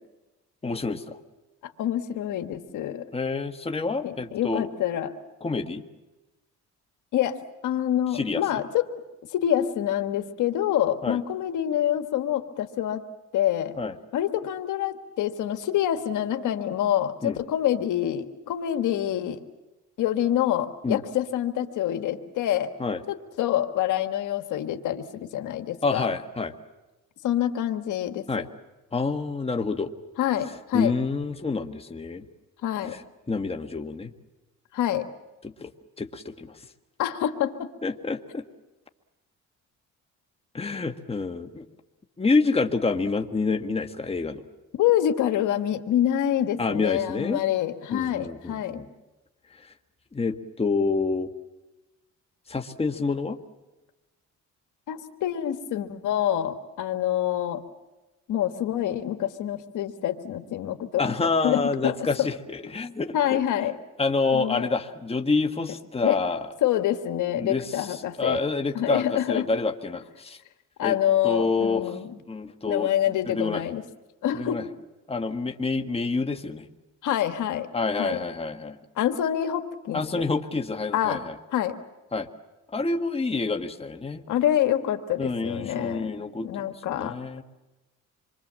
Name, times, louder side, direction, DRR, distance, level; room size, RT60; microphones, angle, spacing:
voice 1, 0.6-1.2 3.1-4.7 5.4-5.8 8.1-8.6 11.0-11.2 13.8-13.9 17.2-17.4 20.8-21.0 22.8-23.0 25.8-26.5 28.3-28.5 28.9-29.9 30.7-32.2 32.8-33.0 33.3-34.1 35.4-35.7 36.0-36.6 37.8-38.4 40.5-41.6 42.2-44.4 46.6-47.4 47.9-48.9 49.6-49.7 50.1-51.3 52.5-53.4 61.0-63.4 64.0-66.5 67.4-70.4 70.8-71.0 71.2-72.0 72.3-72.9 73.2-73.6 74.4-74.6 75.1-76.7 77.7-78.8 79.9-81.4 82.1-82.3 82.7-84.2 85.2-87.4, left 3 dB, 20° left, 5 dB, 1.5 m, -28 dB
voice 2, 1.6-3.0 4.0-5.1 7.1-7.4 7.6-8.8 9.3-13.0 13.3-13.7 14.1-19.4 20.0-22.7 23.1-26.1 27.2-28.3 30.2-30.9 32.6-33.0 34.7-35.1 37.0-37.7 44.8-48.8 54.9-57.6 58.3-62.3 63.1-63.8 64.3-64.7 66.0-66.2 66.6-68.4 68.7-69.5 70.8-72.2 72.6-73.8 74.2-74.6 77.0-77.7 78.0-78.2 79.0-80.2 80.9-81.2 81.5-81.8 84.3-86.1 86.4-87.2, left 11 dB, 80° left, 7 dB, 1.5 m, -26 dB
26.5 x 23.5 x 7.5 m, 1.1 s
cardioid pair, 90°, 30 cm